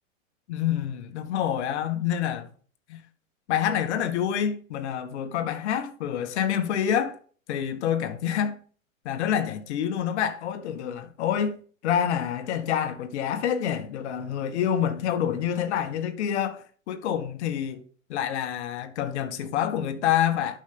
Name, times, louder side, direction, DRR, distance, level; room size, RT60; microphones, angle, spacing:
voice 1, 0.5-2.5 2.9-3.0 3.5-7.2 7.5-8.6 9.0-17.8 18.1-20.6, left 9 dB, 55° left, 1.6 m, -27 dB
11.5 x 5.4 x 3.8 m
hypercardioid pair, 130°, 40 cm